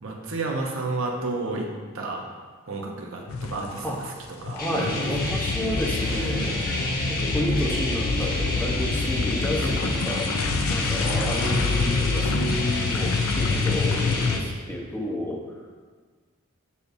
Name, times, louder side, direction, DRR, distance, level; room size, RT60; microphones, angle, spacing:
voice 1, 0.0-1.7 1.9-2.2 2.7-4.1 4.4-4.9 11.2-11.9, right 3 dB, 70° right, 0 dB, 1.0 m, -31 dB
sound 1, 3.3-4.1 4.3-14.4, left 4 dB, 75° left, 0.4 m, -27 dB
voice 2, 4.5-6.6 7.1-10.4 10.7-15.4, left 1 dB, 10° left, -3 dB, 0.9 m, -31 dB
sound 2, 4.6-14.4, left 1 dB, 45° left, 1.2 m, -29 dB
6.8 x 6.6 x 2.7 m, 1.5 s
head